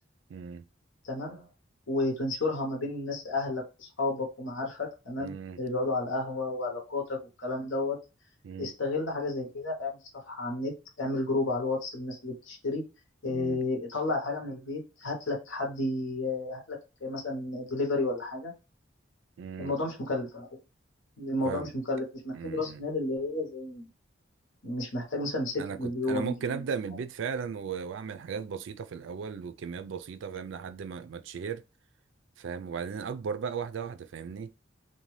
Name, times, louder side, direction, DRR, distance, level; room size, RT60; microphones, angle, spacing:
voice 1, 0.3-0.6 5.2-5.6 8.4-8.7 13.3-13.7 19.4-19.7 21.4-21.7 22.3-22.8 25.5-31.6 32.4-34.5, right 6 dB, 75° right, 0.3 m, -36 dB
voice 2, 1.0-1.5 1.9-8.0 8.6-10.7 11.0-12.8 13.2-18.5 19.6-20.6 21.2-23.9 24.6-26.6, left 2 dB, 80° left, 0.9 m, -32 dB
2.7 x 2.2 x 3.1 m
head